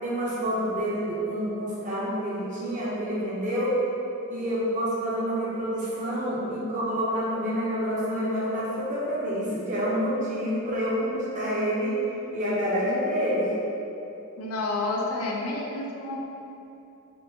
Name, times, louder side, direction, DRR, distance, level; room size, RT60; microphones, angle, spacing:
voice 1, 0.0-3.7 4.3-11.9 12.3-13.5, equal, 35° right, -7 dB, 0.7 m, -28 dB
voice 2, 14.4-16.2, left 2 dB, 85° left, -1 dB, 0.4 m, -29 dB
3.6 x 2.4 x 2.7 m, 2.9 s
head